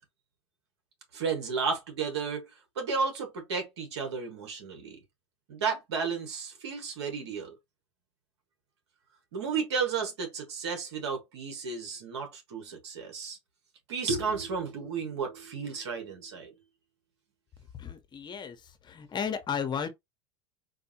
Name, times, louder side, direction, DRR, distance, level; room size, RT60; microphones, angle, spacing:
voice 1, 1.1-2.5 2.7-5.0 5.5-7.5 9.3-13.4 13.9-16.5, right 5 dB, 80° right, 1.6 m, -33 dB
voice 2, 17.7-18.6 18.8-19.9, left 7 dB, 30° left, 1.0 m, -33 dB
4.6 x 2.6 x 2.9 m
hypercardioid pair, 85°, 14 cm